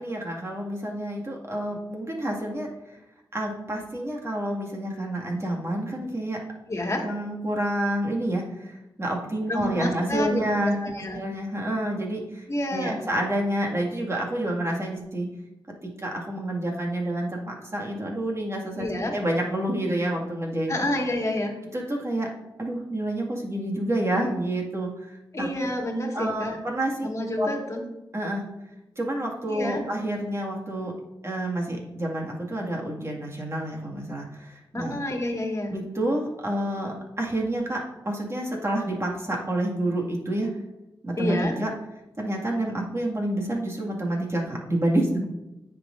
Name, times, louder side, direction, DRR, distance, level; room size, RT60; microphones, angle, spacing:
voice 1, 0.0-2.7 3.3-6.4 7.0-15.3 15.8-20.8 21.7-22.3 22.6-25.1 25.4-25.5 26.1-27.1 27.4-27.5 28.1-28.5 29.0-30.9 31.2-35.0 35.7-40.5 41.0-41.7 42.2-45.2, right 1 dB, 30° right, -1 dB, 2.0 m, -28 dB
voice 2, 6.7-7.1 9.5-10.4 10.8-11.2 12.5-13.0 18.8-19.1 20.7-21.5 25.3-26.6 27.0-27.8 29.5-29.8 34.7-35.7 41.2-41.6, left 1 dB, 35° left, 1 dB, 1.8 m, -28 dB
9.5 x 6.1 x 2.6 m, 0.95 s
cardioid pair, 55°, 9 cm